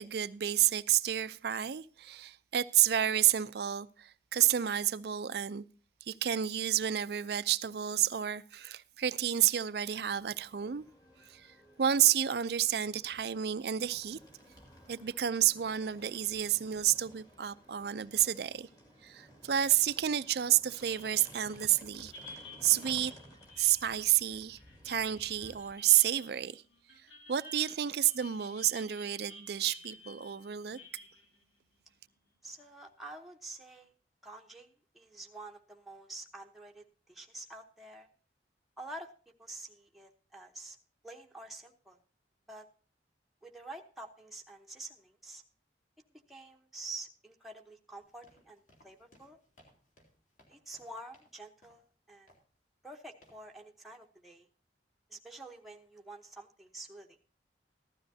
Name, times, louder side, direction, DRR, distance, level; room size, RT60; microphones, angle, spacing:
voice 1, 0.0-5.6 6.1-10.8 11.3-14.2 14.9-18.7 19.0-22.1 22.6-23.1 23.6-24.6 24.8-26.6 27.3-30.8, right 11 dB, 60° right, 0.4 m, -30 dB
sound 1, 10.0-25.7, equal, 20° left, 2.0 m, -57 dB
sound 2, 20.8-32.5, left 1 dB, 80° left, 3.1 m, -53 dB
voice 2, 32.4-33.9 34.2-38.1 38.8-39.1 39.4-40.8 41.0-42.0 42.5-42.7 43.4-45.4 46.3-49.4 50.5-52.3 52.8-54.5 55.1-57.2, right 2 dB, ahead, 0.9 m, -48 dB
sound 3, 48.0-51.4 51.6-51.9 52.3-52.6 53.2-53.5, equal, 40° left, 3.2 m, -64 dB
15.0 x 12.5 x 2.7 m
head